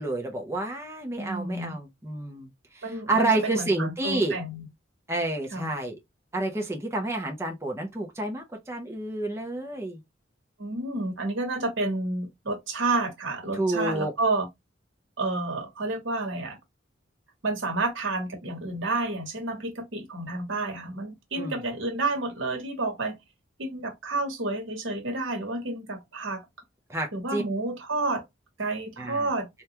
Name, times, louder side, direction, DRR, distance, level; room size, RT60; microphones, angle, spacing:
voice 1, 0.0-4.4 5.1-5.9 6.3-10.0 13.5-14.1 21.4-21.6 26.9-27.4 29.0-29.3, right 2 dB, 15° right, 0.6 m, -29 dB
voice 2, 1.2-1.7 2.8-4.7 5.5-5.7 10.6-14.5 15.2-16.6 17.4-23.2 23.6-26.4 27.1-28.2 28.6-29.5, right 2 dB, 85° right, 1.0 m, -30 dB
3.3 x 2.3 x 2.8 m
head